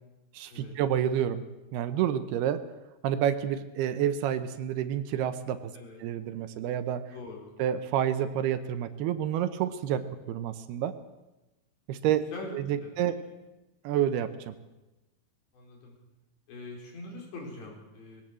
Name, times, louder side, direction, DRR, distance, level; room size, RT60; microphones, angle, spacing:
voice 1, 0.3-1.4 1.7-2.6 3.0-5.7 6.0-7.0 7.6-10.9 11.9-12.3 12.5-13.2 13.8-14.6, right 10 dB, 75° right, 11 dB, 2.7 m, -29 dB
voice 2, 7.1-7.5 12.3-12.9 13.3-13.4 15.5-16.0 16.5-18.2, left 2 dB, 85° left, 0 dB, 6.9 m, -43 dB
21.0 x 17.0 x 7.5 m, 1.0 s
omnidirectional pair, 4.9 m